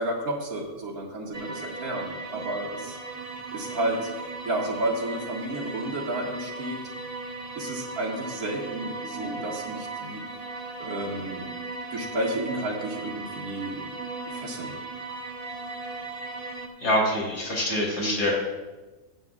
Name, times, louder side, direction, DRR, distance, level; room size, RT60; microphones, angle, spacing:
voice 1, 0.0-3.0 3.5-4.1 4.4-6.8 7.6-10.2 10.8-11.5 11.9-13.9 14.3-14.8 18.0-18.2, right 1 dB, 65° right, -3 dB, 2.3 m, -31 dB
sound 1, 1.3-16.7, right 3 dB, 30° right, 0.9 m, -37 dB
voice 2, 16.8-18.3, left 1 dB, 80° left, -4 dB, 3.8 m, -25 dB
20.0 x 7.7 x 2.4 m, 1.2 s
omnidirectional pair, 1.7 m